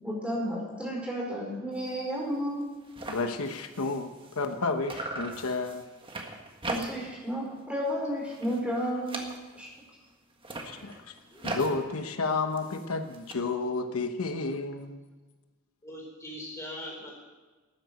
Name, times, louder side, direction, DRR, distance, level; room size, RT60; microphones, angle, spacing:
voice 1, 0.0-2.6 6.6-9.3 9.5-9.7, equal, 5° right, -4 dB, 4.8 m, -32 dB
sound 1, 1.7-2.0 2.3-2.4 2.6-4.6 4.9-7.2 7.6-7.9 8.2-9.8 10.3-13.3, right 2 dB, 25° right, 1.5 m, -40 dB
voice 2, 3.1-5.8 10.6-11.1 11.4-15.0, left 3 dB, 85° left, 7 dB, 1.0 m, -31 dB
voice 3, 15.8-17.1, left 1 dB, 15° left, -1 dB, 4.1 m, -41 dB
13.0 x 9.5 x 7.8 m, 1.3 s
head